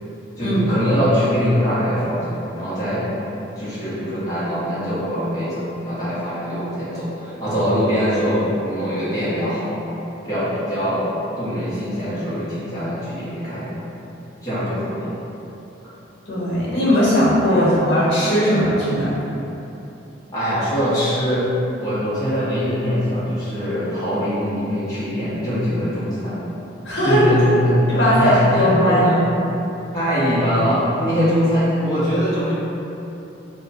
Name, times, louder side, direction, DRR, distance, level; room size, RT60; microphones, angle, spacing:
voice 1, 0.4-3.1 3.6-9.8 10.2-11.1 11.4-13.7 14.4-15.1 17.5-17.7 20.3-21.5 21.8-26.5 27.0-29.2 29.9-32.5, equal, 20° left, -12 dB, 0.8 m, -22 dB
voice 2, 16.3-19.1 26.8-27.3 27.9-29.1, equal, 75° left, -8 dB, 1.0 m, -18 dB
2.7 x 2.1 x 4.0 m, 3.0 s
head